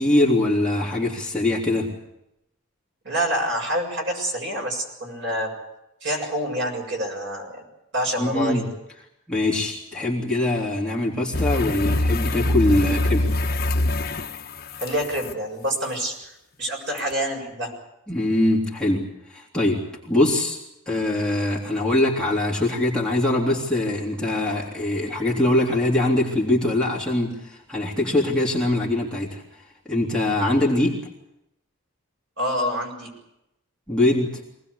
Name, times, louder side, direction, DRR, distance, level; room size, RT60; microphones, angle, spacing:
voice 1, 0.0-2.0 8.2-8.7 9.3-13.3 18.1-19.1 19.3-20.6 20.9-29.4 29.8-31.0 33.9-34.4, left 1 dB, 5° left, -5 dB, 3.4 m, -22 dB
voice 2, 3.0-5.5 6.0-7.6 7.9-8.7 14.8-17.7 32.4-33.1, equal, 55° right, 2 dB, 7.1 m, -27 dB
sound 1, 11.3-15.3 17.0-17.1, left 1 dB, 45° left, 1.2 m, -24 dB
24.5 x 19.0 x 8.4 m, 0.85 s
head